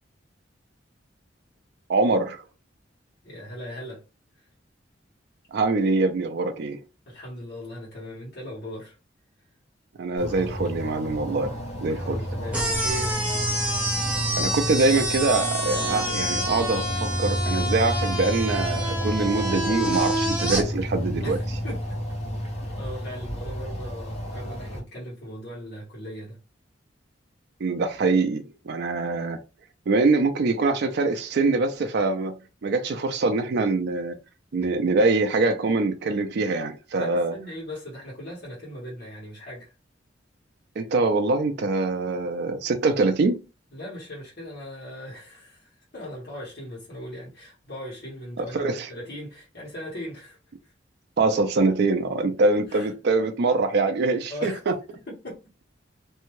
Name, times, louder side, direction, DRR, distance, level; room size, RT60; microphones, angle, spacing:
voice 1, 1.9-2.4 5.5-6.8 10.0-11.5 11.8-12.2 14.4-21.4 27.6-29.4 29.9-32.3 32.6-34.2 34.5-37.3 40.8-43.4 48.4-48.9 51.2-54.7, right 3 dB, 60° right, 0.4 m, -24 dB
voice 2, 3.2-4.0 4.4-4.5 7.1-9.0 11.9-13.4 21.2-22.0 22.3-22.4 22.8-26.4 37.0-39.7 43.7-50.7 52.5-52.9 54.3-54.6 55.1-55.4, equal, 60° left, 1.2 m, -39 dB
sound 1, 10.2-24.8, equal, 35° left, 1.0 m, -31 dB
sound 2, 12.5-20.6, right 1 dB, 5° right, 0.8 m, -28 dB
2.6 x 2.2 x 3.0 m
head